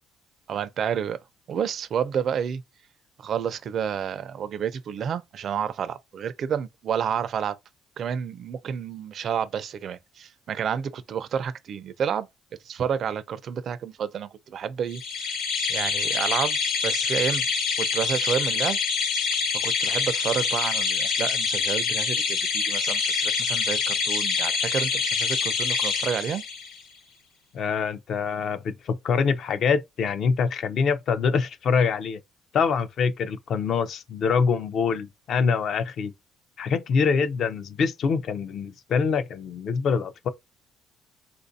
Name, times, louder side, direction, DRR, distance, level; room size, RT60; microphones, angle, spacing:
voice 1, 0.5-1.2 1.5-2.6 3.2-7.6 8.0-12.3 12.6-15.3 15.7-16.6 16.8-17.5 17.8-18.8 19.6-26.4, right 8 dB, 45° right, 0.4 m, -30 dB
sound 1, 14.9-26.8, left 5 dB, 65° left, 0.9 m, -26 dB
voice 2, 27.5-32.2 32.5-36.1 36.6-40.3, left 5 dB, 45° left, 0.4 m, -25 dB
3.6 x 2.5 x 2.6 m
cardioid pair, 160°, 0 cm